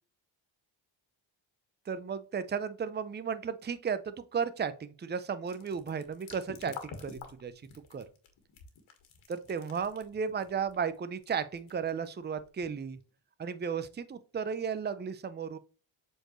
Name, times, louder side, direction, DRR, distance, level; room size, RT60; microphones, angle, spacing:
voice 1, 1.9-7.5 7.9-8.0 9.3-13.0 13.4-15.6, right 6 dB, 20° right, 0.6 m, -34 dB
sound 1, 5.4-13.1, left 6 dB, 80° left, 1.9 m, -49 dB
7.6 x 4.6 x 3.1 m
cardioid pair, 90°, 47 cm